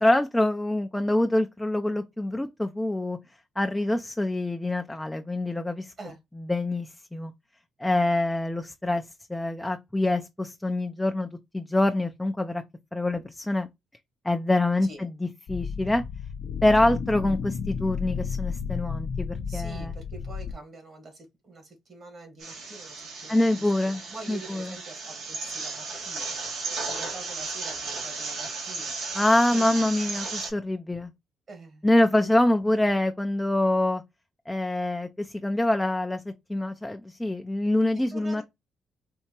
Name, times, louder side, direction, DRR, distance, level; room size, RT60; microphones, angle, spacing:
voice 1, 0.0-3.2 3.6-5.9 6.5-7.3 7.8-11.3 11.5-12.6 12.9-13.7 14.2-16.0 16.6-19.9 23.3-24.0 24.3-24.7 29.1-31.1 31.8-34.0 34.5-38.4, left 1 dB, 10° left, 0.4 m, -25 dB
sound 1, 15.5-20.5, left 6 dB, 65° left, 0.5 m, -32 dB
voice 2, 19.5-26.4 26.7-29.2 29.5-29.9 31.5-32.3 37.9-38.4, right 3 dB, 50° right, 1.6 m, -46 dB
sound 2, 22.4-30.5, right 4 dB, 80° right, 1.8 m, -35 dB
4.4 x 2.8 x 2.8 m
cardioid pair, 90°, 0 cm